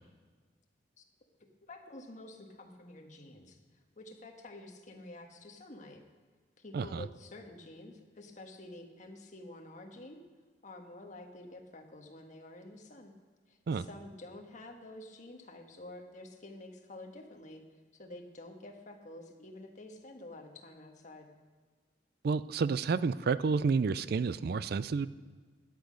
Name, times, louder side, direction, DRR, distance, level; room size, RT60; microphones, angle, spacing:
voice 1, 1.7-3.6 4.0-6.0 6.6-10.2 10.6-13.1 13.5-17.6 17.9-21.3, left 1 dB, 45° left, 3 dB, 1.5 m, -49 dB
voice 2, 6.7-7.0 13.7-13.9 22.2-25.1, right 5 dB, 60° right, 16 dB, 0.4 m, -30 dB
12.5 x 10.5 x 5.2 m, 1.5 s
head